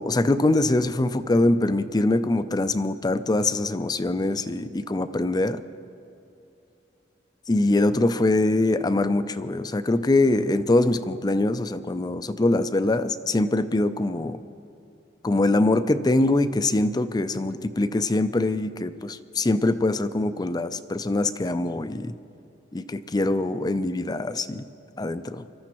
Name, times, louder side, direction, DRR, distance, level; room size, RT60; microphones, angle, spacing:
voice 1, 0.0-5.6 7.5-14.4 15.2-22.1 22.7-24.6 25.0-25.4, left 2 dB, 25° left, 12 dB, 0.5 m, -23 dB
24.5 x 13.5 x 3.0 m, 2.7 s
head